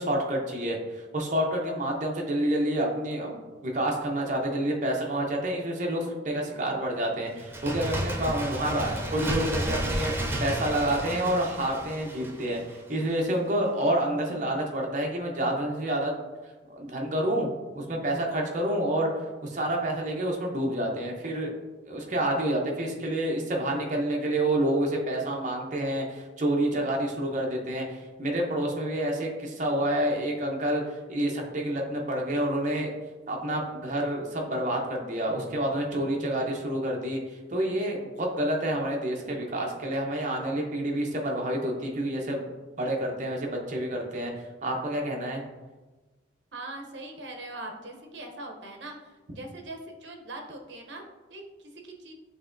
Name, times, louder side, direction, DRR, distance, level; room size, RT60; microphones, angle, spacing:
voice 1, 0.0-10.1 10.4-16.2 16.7-19.1 19.4-21.5 21.9-32.9 33.3-42.5 42.8-44.3 44.6-45.4, right 1 dB, 40° right, 0 dB, 0.7 m, -28 dB
Bird, 7.4-12.9 13.2-13.3, right 1 dB, 10° right, 0.3 m, -32 dB
voice 2, 46.5-48.9 49.4-51.0 51.3-51.4 51.8-52.1, right 2 dB, 70° right, 2 dB, 0.7 m, -41 dB
6.5 x 2.9 x 2.5 m, 1.2 s
head